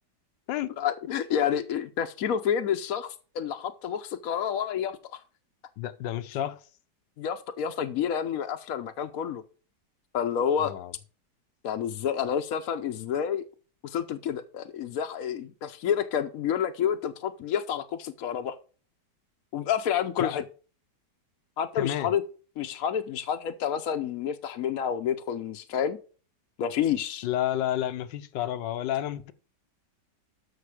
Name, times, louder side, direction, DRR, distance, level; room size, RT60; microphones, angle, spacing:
voice 1, 0.8-5.2 7.2-9.4 10.1-10.7 11.6-13.5 13.8-18.6 19.5-20.4 21.6-22.2 22.6-26.0 26.6-27.3, left 8 dB, 65° left, 1.0 m, -29 dB
voice 2, 5.8-6.6 10.6-10.9 20.2-20.4 21.7-22.1 27.2-29.3, left 12 dB, 85° left, 1.4 m, -30 dB
13.0 x 5.5 x 4.8 m
omnidirectional pair, 1.9 m